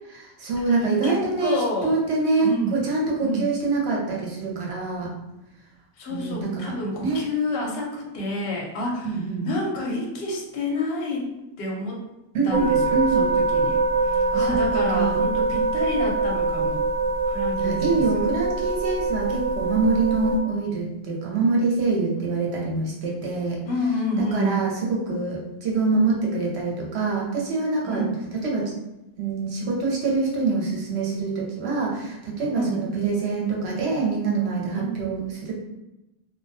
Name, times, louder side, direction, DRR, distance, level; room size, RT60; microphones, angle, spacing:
voice 1, 0.1-5.1 6.1-7.2 9.0-9.5 12.3-13.2 14.4-14.6 14.9-15.3 17.6-23.6 24.2-28.0 28.4-28.7 29.2-35.5, right 3 dB, 70° right, -3 dB, 0.9 m, -25 dB
voice 2, 0.7-2.0 2.4-2.7 3.2-3.5 6.0-11.3 11.6-12.0 12.4-16.8 17.3-18.2 23.7-24.6 27.8-28.1 32.5-32.8 34.7-34.9, left 1 dB, 65° left, -1 dB, 0.8 m, -29 dB
sound 1, 12.5-20.4, right 3 dB, 50° right, 0.5 m, -24 dB
2.2 x 2.1 x 2.6 m, 0.96 s
omnidirectional pair, 1.2 m